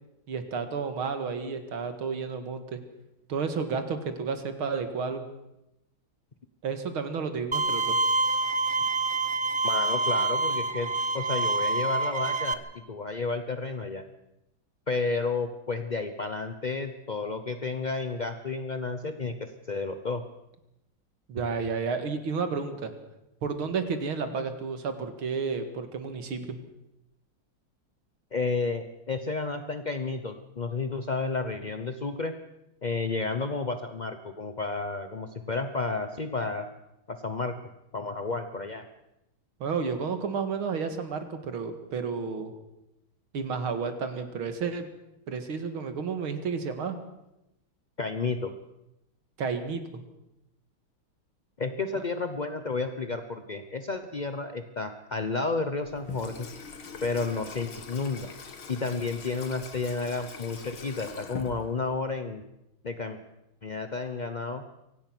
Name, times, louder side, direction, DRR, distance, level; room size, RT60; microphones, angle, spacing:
voice 1, 0.3-2.8 3.3-5.2 6.6-8.0 21.3-22.9 23.4-26.6 39.6-42.5 43.3-44.9 45.3-47.0 49.4-50.0 51.9-52.0, right 5 dB, 80° right, 8 dB, 2.7 m, -31 dB
Bowed string instrument, 7.5-12.5, right 3 dB, 20° right, 0.7 m, -26 dB
voice 2, 9.6-14.0 14.9-20.2 28.3-32.3 32.8-36.7 37.1-37.5 37.9-38.9 48.0-48.5 51.6-56.5 57.0-58.3 58.7-62.4 62.8-63.2 63.6-64.6, left 3 dB, 45° left, 8 dB, 0.6 m, -31 dB
Water tap faucet / Sink (filling or washing), 55.8-62.1, left 5 dB, 75° left, 2.8 m, -43 dB
24.0 x 17.5 x 6.2 m, 0.89 s
omnidirectional pair, 2.3 m